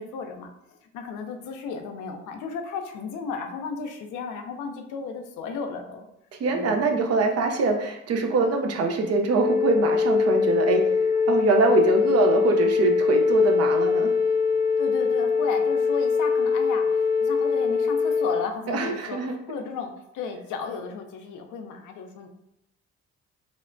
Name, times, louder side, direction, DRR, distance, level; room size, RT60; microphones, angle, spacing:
voice 1, 0.0-6.1 6.5-6.9 14.8-22.3, left 5 dB, 80° left, 5 dB, 0.5 m, -34 dB
voice 2, 6.3-11.0 11.3-14.1 18.7-19.3, right 3 dB, 55° right, 4 dB, 0.5 m, -23 dB
Wind instrument woodwind instrument, 9.3-18.5, left 5 dB, 30° left, 0.5 m, -22 dB
3.1 x 2.1 x 2.5 m, 0.80 s
cardioid pair, 90°, 30 cm